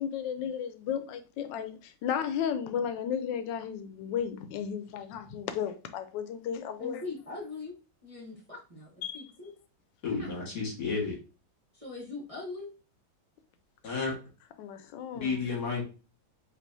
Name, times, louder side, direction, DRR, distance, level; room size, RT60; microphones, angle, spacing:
voice 1, 0.0-7.0 9.0-9.3 13.8-14.0 14.6-15.4, left 8 dB, 85° left, 1.3 m, -34 dB
voice 2, 6.8-7.7 8.0-8.9 9.1-9.5 10.2-10.4 11.7-12.7, left 3 dB, 25° right, 0.9 m, -41 dB
voice 3, 10.0-11.2 13.8-14.1 15.2-15.8, left 4 dB, 70° left, 2.2 m, -31 dB
5.3 x 2.7 x 2.6 m
omnidirectional pair, 1.9 m